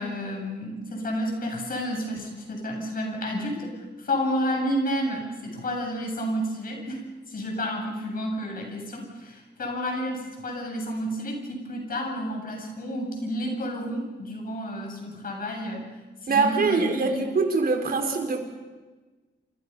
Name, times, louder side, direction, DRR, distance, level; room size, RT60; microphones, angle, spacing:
voice 1, 0.0-15.9 16.2-17.2, equal, 50° left, 1 dB, 7.9 m, -31 dB
voice 2, 16.3-18.4, right 4 dB, 55° right, 3 dB, 4.7 m, -23 dB
29.0 x 27.5 x 5.6 m, 1.3 s
wide cardioid pair, 150°, 18 cm